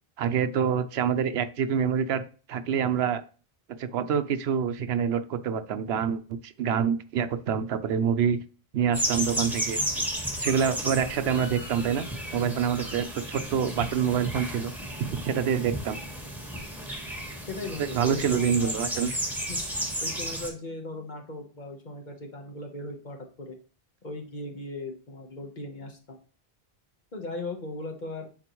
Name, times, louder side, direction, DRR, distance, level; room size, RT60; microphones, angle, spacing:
voice 1, 0.2-2.2 2.5-3.2 3.8-8.4 8.7-9.8 10.4-12.1 12.3-14.7 15.1-16.0 17.8-19.2, right 7 dB, 90° right, 11 dB, 0.9 m, -26 dB
sound 1, 8.9-20.5, equal, ahead, 1.3 m, -33 dB
voice 2, 17.5-18.7 19.5-19.6 20.0-23.6 24.0-26.2 27.1-28.3, left 2 dB, 50° left, 3 dB, 1.3 m, -38 dB
9.6 x 4.1 x 3.0 m, 0.39 s
omnidirectional pair, 1.0 m